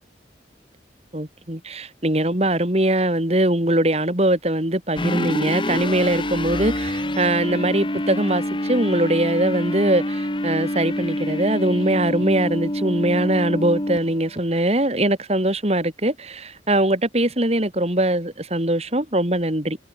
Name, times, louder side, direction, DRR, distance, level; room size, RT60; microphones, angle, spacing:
voice 1, 1.1-19.8, right 1 dB, 35° right, 3.2 m, -22 dB
sound 1, 5.0-14.4, left 1 dB, 25° left, 2.9 m, -26 dB
head